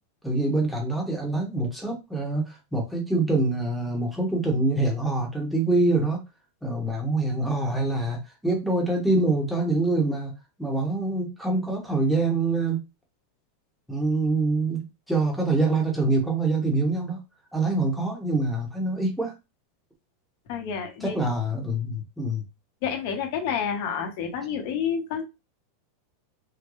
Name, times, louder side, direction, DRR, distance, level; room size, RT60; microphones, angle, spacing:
voice 1, 0.2-6.2 6.6-10.3 10.6-12.8 13.9-17.2 17.5-19.3 21.0-22.4, right 2 dB, ahead, -1 dB, 1.0 m, -25 dB
voice 2, 20.5-21.2 22.8-25.2, left 7 dB, 55° left, 4 dB, 1.0 m, -29 dB
3.8 x 2.2 x 3.1 m, 0.25 s
supercardioid pair, 155°, 0 cm